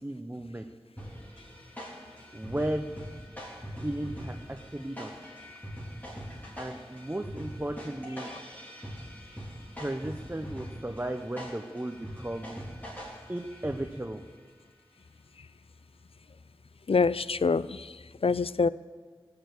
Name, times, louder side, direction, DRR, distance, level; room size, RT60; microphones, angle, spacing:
voice 1, 0.0-0.6 2.3-2.8 3.8-5.1 6.6-8.3 9.8-12.5 13.3-14.2, right 1 dB, 20° right, 0.7 m, -35 dB
sound 1, 1.0-14.1, equal, 15° left, 3.7 m, -43 dB
voice 2, 16.9-17.9 18.2-18.7, left 4 dB, 65° left, 0.4 m, -25 dB
18.0 x 7.0 x 8.1 m
wide cardioid pair, 50°, 10 cm